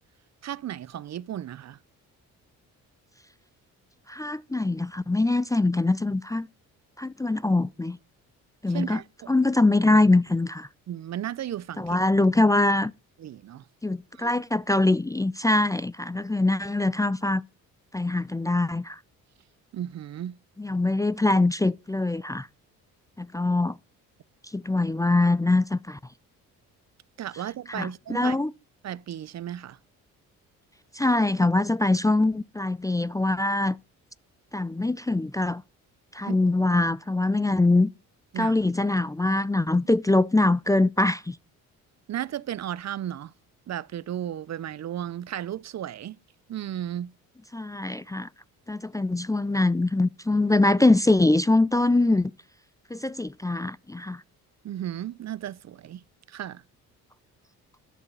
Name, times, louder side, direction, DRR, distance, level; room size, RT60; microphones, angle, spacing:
voice 1, 0.4-1.8 8.7-9.3 10.9-12.0 13.2-13.6 14.2-14.3 19.7-20.4 27.2-28.4 28.8-29.8 36.3-36.5 38.3-38.6 42.1-43.3 43.7-46.2 46.5-47.1 54.6-56.0 56.3-56.6, right 11 dB, 50° right, 0.6 m, -34 dB
voice 2, 4.1-6.5 7.0-8.0 8.6-9.0 9.3-10.7 11.8-12.9 13.8-17.4 17.9-19.0 20.6-22.5 23.2-23.8 24.5-26.0 27.7-28.5 30.9-33.8 34.5-35.6 36.1-37.9 38.4-41.4 47.5-48.3 48.7-52.3 52.9-54.2, left 2 dB, 10° left, 0.5 m, -23 dB
11.5 x 6.8 x 5.4 m
supercardioid pair, 70°, 35 cm